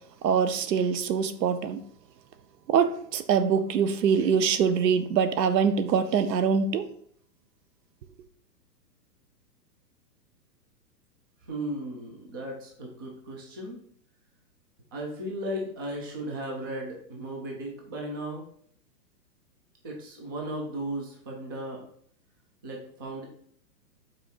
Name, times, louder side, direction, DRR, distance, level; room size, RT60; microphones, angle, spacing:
voice 1, 0.2-1.8 2.7-6.9, right 6 dB, 75° right, 0.9 m, -24 dB
voice 2, 11.5-13.8 14.9-18.4 19.8-21.8 22.6-23.2, right 1 dB, 15° right, 0.4 m, -36 dB
5.7 x 4.2 x 4.4 m
hypercardioid pair, 150°, 50 cm